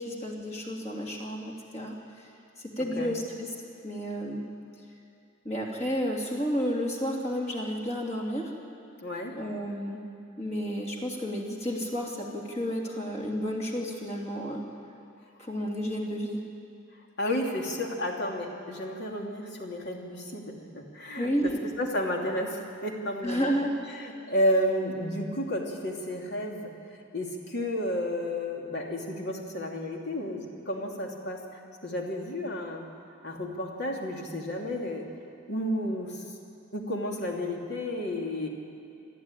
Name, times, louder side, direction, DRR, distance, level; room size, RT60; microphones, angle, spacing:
voice 1, 0.0-2.3 2.6-3.5 3.8-4.4 5.4-8.5 9.4-10.0 10.4-14.6 15.4-16.4 21.2-21.6 23.2-23.7, equal, 30° left, -1 dB, 3.1 m, -31 dB
voice 2, 9.0-9.3 17.2-21.5 21.8-23.6 23.9-26.7 27.1-31.4 31.8-32.9 33.2-35.1 35.5-36.3 36.7-38.5, left 1 dB, 50° left, 0 dB, 2.9 m, -31 dB
26.0 x 13.0 x 9.9 m, 2.5 s
head